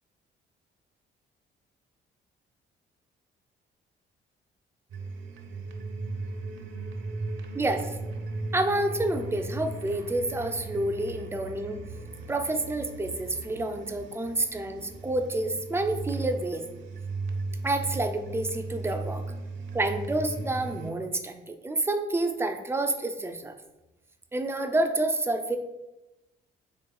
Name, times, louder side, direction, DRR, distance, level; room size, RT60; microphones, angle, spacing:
sound 1, 4.9-20.9, right 3 dB, 70° right, 0.6 m, -37 dB
voice 1, 7.5-8.0 8.5-11.8 12.3-16.7 17.6-19.2 19.7-23.5 24.3-25.6, right 2 dB, 10° right, 6 dB, 0.3 m, -29 dB
4.1 x 3.4 x 2.2 m, 0.98 s
cardioid pair, 90°, 20 cm